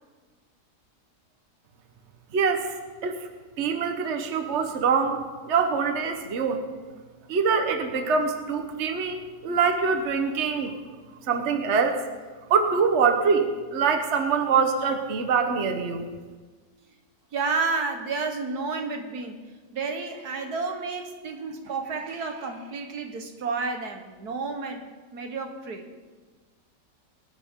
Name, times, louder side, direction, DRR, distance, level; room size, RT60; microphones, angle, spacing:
voice 1, 2.3-2.7 3.0-3.2 3.6-5.2 5.5-6.6 7.3-10.7 11.3-12.0 12.5-16.1, right 5 dB, 45° right, 5 dB, 1.3 m, -24 dB
voice 2, 17.3-19.4 19.7-24.8 25.1-25.9, right 4 dB, 65° right, 5 dB, 1.7 m, -31 dB
22.0 x 11.5 x 3.7 m, 1.4 s
omnidirectional pair, 1.8 m